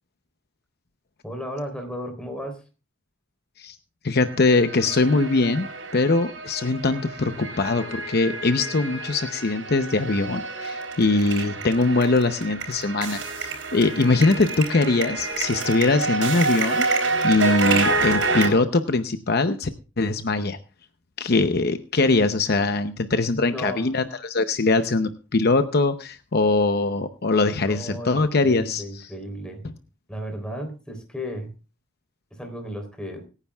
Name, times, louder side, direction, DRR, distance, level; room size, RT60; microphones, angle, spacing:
voice 1, 1.2-2.6 23.2-23.9 27.7-29.7 30.1-31.5 32.3-33.2, equal, 5° left, 4 dB, 3.5 m, -34 dB
voice 2, 4.0-5.7 5.9-19.7 20.0-20.6 21.2-28.8, left 3 dB, 55° left, 9 dB, 0.8 m, -22 dB
sound 1, 4.3-18.5, right 3 dB, 85° right, 4.8 m, -28 dB
24.5 x 9.9 x 2.3 m, 0.33 s
head